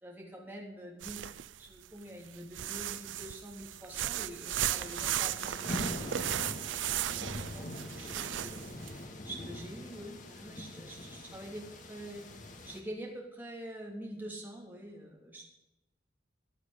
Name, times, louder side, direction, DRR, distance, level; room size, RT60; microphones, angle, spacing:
voice 1, 0.0-1.2 1.6-12.3 12.6-15.5, right 1 dB, 10° right, -2 dB, 3.3 m, -46 dB
sound 1, 1.0-1.8 2.3-8.9, right 11 dB, 75° right, 0.5 m, -35 dB
sound 2, 4.7-12.8, left 1 dB, 45° left, 1.9 m, -43 dB
15.5 x 9.8 x 5.3 m, 0.93 s
head